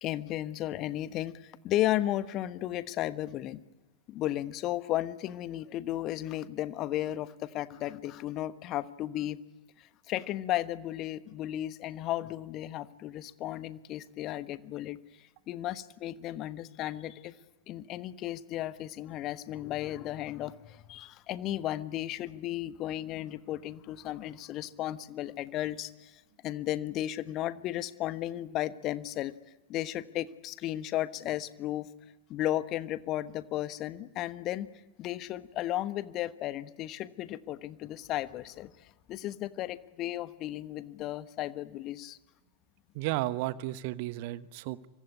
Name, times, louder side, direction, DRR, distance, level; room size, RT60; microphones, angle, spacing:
voice 1, 0.0-3.6 4.1-9.4 9.8-17.3 17.7-29.3 29.7-31.9 32.3-34.7 35.0-42.2, left 14 dB, 35° left, 14 dB, 1.2 m, -34 dB
voice 2, 42.9-44.9, right 16 dB, 45° right, 15 dB, 1.1 m, -33 dB
25.0 x 23.5 x 9.7 m, 1.1 s
figure-of-eight pair, 90°, 0 cm